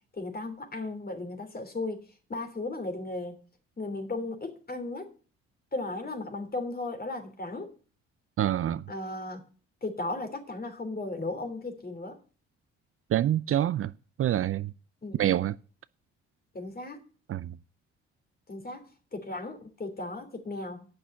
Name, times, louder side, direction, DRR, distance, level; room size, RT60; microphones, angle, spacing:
voice 1, 0.1-2.0 2.3-3.4 3.8-5.1 5.7-7.7 8.9-9.4 9.8-12.2 15.0-15.2 16.5-17.0 18.5-20.9, left 2 dB, 30° left, 3.2 m, -36 dB
voice 2, 8.4-8.8 13.1-13.9 14.2-14.7 15.2-15.5 17.3-17.6, right 12 dB, 45° right, 0.5 m, -26 dB
8.8 x 6.2 x 8.2 m
hypercardioid pair, 50°, 30 cm